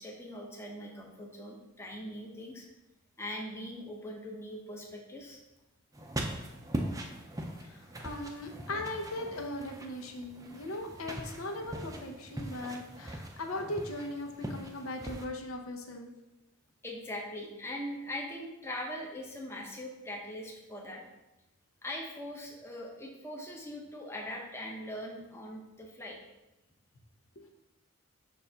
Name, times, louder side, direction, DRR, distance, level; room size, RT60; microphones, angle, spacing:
voice 1, 0.0-2.6 3.2-5.4 16.8-21.0 21.8-26.2, left 1 dB, 10° left, -1 dB, 0.7 m, -41 dB
sound 1, 5.9-15.3, right 1 dB, 15° right, 0.5 m, -41 dB
voice 2, 7.6-16.1 27.4-27.5, left 1 dB, 85° left, 3 dB, 0.8 m, -39 dB
6.8 x 2.6 x 5.6 m, 0.98 s
head